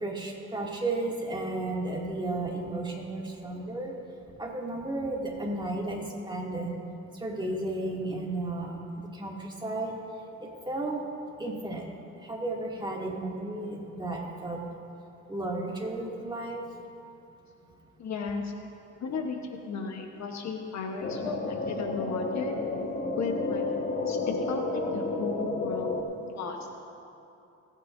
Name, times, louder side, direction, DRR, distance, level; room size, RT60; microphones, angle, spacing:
voice 1, 0.0-3.9 4.4-6.8 7.2-10.0 10.7-11.0 11.4-11.9 12.2-14.6 15.3-16.6, right 2 dB, 15° right, -3 dB, 2.5 m, -33 dB
voice 2, 18.0-18.5 19.0-22.6 23.2-26.0 26.3-26.6, left 4 dB, 65° left, 3 dB, 1.2 m, -35 dB
sound 1, 21.0-26.0, left 3 dB, 40° left, 1.5 m, -31 dB
28.0 x 9.7 x 2.7 m, 2.7 s
cardioid pair, 90°, 30 cm